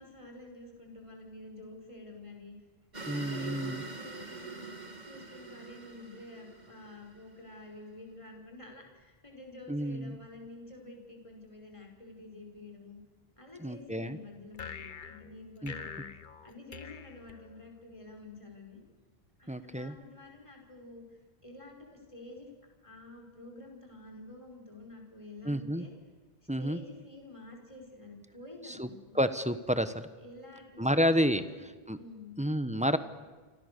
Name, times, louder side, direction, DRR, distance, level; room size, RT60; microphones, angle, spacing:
voice 1, 0.0-2.5 2.9-13.0 13.4-16.1 16.4-18.8 19.4-22.5 22.8-25.9 26.6-29.2 30.2-31.6 32.0-32.4, left 2 dB, 30° left, 1 dB, 5.2 m, -49 dB
sound 1, 2.9-7.5, right 4 dB, 45° right, 2.5 m, -44 dB
voice 2, 3.1-3.8 9.7-10.2 13.6-14.2 15.6-15.7 19.5-19.9 25.4-25.8 26.5-26.8 28.7-28.9 29.1-30.1 30.8-31.4 31.9-32.0 32.4-33.0, equal, 5° right, 11 dB, 1.1 m, -29 dB
sound 2, 14.5-18.0, left 6 dB, 50° left, 1.1 m, -45 dB
29.5 x 25.5 x 6.8 m, 1.3 s
omnidirectional pair, 1.1 m